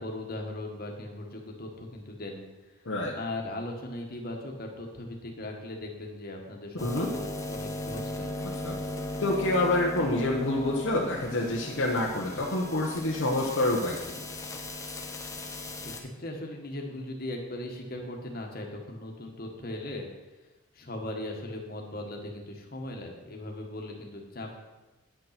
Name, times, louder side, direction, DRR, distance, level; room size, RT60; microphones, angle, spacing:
voice 1, 0.0-2.5 3.1-8.5 15.7-20.1 20.7-24.6, left 1 dB, 45° left, 1 dB, 1.6 m, -38 dB
voice 2, 6.8-7.1 8.6-8.8 9.2-14.2, left 2 dB, 60° left, -2 dB, 1.1 m, -27 dB
sound 1, 6.8-16.0, left 1 dB, 15° left, 1.0 m, -37 dB
9.4 x 6.8 x 5.9 m, 1.1 s
head